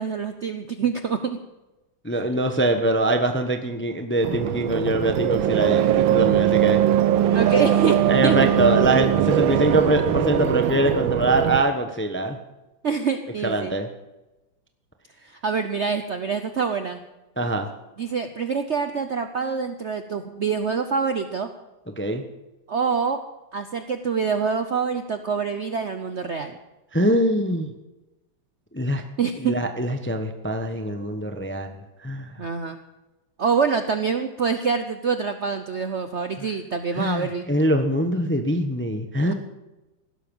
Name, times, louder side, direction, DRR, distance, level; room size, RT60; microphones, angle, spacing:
voice 1, 0.0-1.4 7.3-8.5 12.8-13.7 15.3-17.0 18.0-21.5 22.7-23.2 23.5-26.6 29.2-29.5 32.4-32.8 33.4-37.4, right 5 dB, 55° right, 8 dB, 0.8 m, -25 dB
voice 2, 2.0-6.8 8.1-12.4 13.4-13.9 17.4-17.7 22.0-22.2 26.9-27.7 28.7-29.0 29.4-31.7 32.0-32.3 36.9-39.3, right 1 dB, 10° left, 6 dB, 0.6 m, -23 dB
sound 1, 4.2-11.6, right 11 dB, 85° right, 1.5 m, -21 dB
16.5 x 12.0 x 5.4 m, 1.0 s
omnidirectional pair, 2.1 m